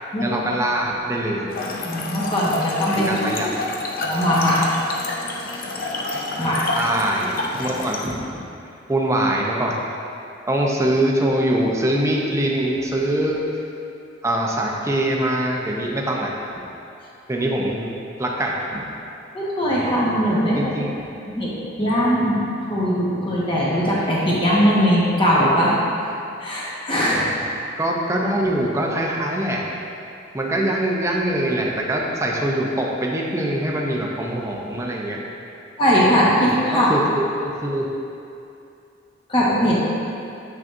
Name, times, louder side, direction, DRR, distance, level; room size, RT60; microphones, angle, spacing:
voice 1, 0.2-1.5 2.9-3.5 6.7-8.4 8.9-9.8 10.5-13.4 14.2-16.3 17.3-17.9 18.2-18.8 20.5-20.9 27.8-29.6 30.3-35.2 36.7-37.9, right 1 dB, 15° right, -2 dB, 0.6 m, -23 dB
Trickle dribble / Fill (with liquid), 1.5-8.1, left 2 dB, 50° left, 0.6 m, -28 dB
voice 2, 1.8-3.1 4.0-4.6 6.4-6.7 19.3-20.6 21.3-21.5 21.8-22.4 22.7-25.7 26.4-27.3 35.8-36.9 39.3-39.9, equal, 30° left, -7 dB, 1.3 m, -20 dB
7.2 x 6.2 x 2.6 m, 2.7 s
head